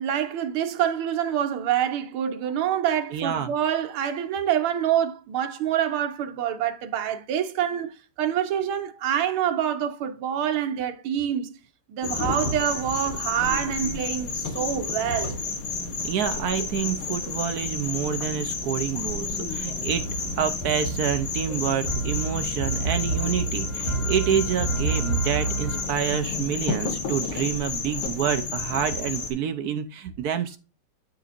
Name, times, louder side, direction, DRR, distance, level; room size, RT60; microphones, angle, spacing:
voice 1, 0.0-7.9 8.2-11.5 11.9-15.4, right 9 dB, 90° right, 1.7 m, -26 dB
voice 2, 3.1-3.5 16.0-20.1 20.4-30.6, right 8 dB, 65° right, 1.0 m, -28 dB
sound 1, 12.0-29.3, left 4 dB, 65° left, 1.9 m, -31 dB
sound 2, 19.1-26.6, right 4 dB, 80° left, 3.2 m, -30 dB
12.0 x 4.1 x 2.5 m
omnidirectional pair, 2.3 m